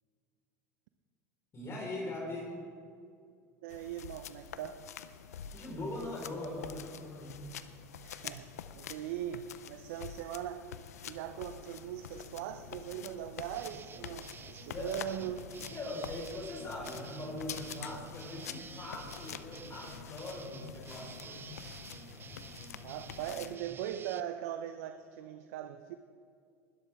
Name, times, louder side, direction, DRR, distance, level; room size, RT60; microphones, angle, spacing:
voice 1, 1.5-2.7 5.5-7.5 14.7-14.9 15.7-21.5, left 1 dB, 35° left, -2 dB, 4.5 m, -41 dB
voice 2, 3.6-4.8 8.0-8.5 8.8-10.7 11.1-16.1 22.8-25.9, right 11 dB, 70° right, 9 dB, 0.6 m, -40 dB
sound 1, 3.7-23.6, left 9 dB, 85° left, 0.6 m, -47 dB
sound 2, 13.5-24.2, right 6 dB, 25° right, 0.7 m, -50 dB
20.5 x 13.0 x 3.6 m, 2.3 s
hypercardioid pair, 85°, 8 cm